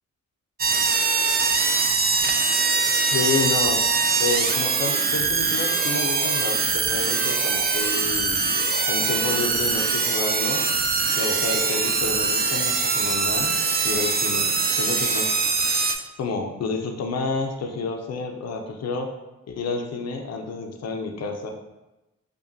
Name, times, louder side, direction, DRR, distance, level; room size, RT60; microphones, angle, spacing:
sound 1, 0.6-15.9, right 4 dB, 30° right, 0.4 m, -22 dB
voice 1, 3.1-3.8 4.2-8.4 8.9-10.6 11.2-13.5 13.8-15.3 16.2-19.1 19.5-21.5, left 4 dB, 55° left, 3 dB, 0.5 m, -29 dB
4.9 x 2.3 x 2.6 m, 1.0 s
cardioid pair, 70°, 31 cm